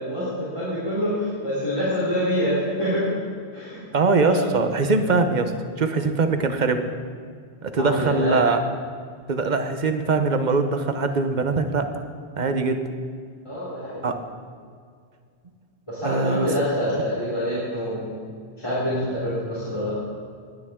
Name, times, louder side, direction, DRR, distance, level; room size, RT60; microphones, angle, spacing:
voice 1, 0.0-3.1 3.5-3.8 4.2-4.5 5.0-5.2 7.8-8.4 13.4-14.0 15.9-18.1 18.6-19.9, equal, 25° left, -9 dB, 3.5 m, -26 dB
voice 2, 3.9-5.5 5.8-6.9 7.6-8.6 9.3-11.9 12.4-12.8 14.0-14.2 16.0-16.5, right 3 dB, 45° right, 7 dB, 1.0 m, -22 dB
20.0 x 9.6 x 3.7 m, 2.1 s
omnidirectional pair, 1.1 m